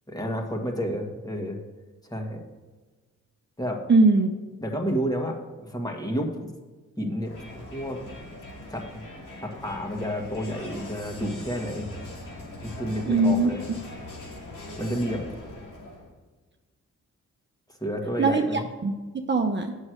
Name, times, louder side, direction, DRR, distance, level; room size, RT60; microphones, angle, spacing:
voice 1, 0.1-1.6 2.1-2.4 3.6-3.8 4.6-6.5 7.0-8.0 8.7-8.9 9.4-11.9 12.6-13.6 14.8-15.3 17.8-18.6, equal, 10° left, 2 dB, 1.7 m, -30 dB
voice 2, 3.9-4.3 13.1-13.5 18.2-19.8, right 3 dB, 35° right, 3 dB, 0.8 m, -21 dB
Crowd, 7.2-16.1, left 2 dB, 85° left, 2.7 m, -41 dB
8.5 x 6.4 x 6.3 m, 1.3 s
cardioid pair, 75°, 31 cm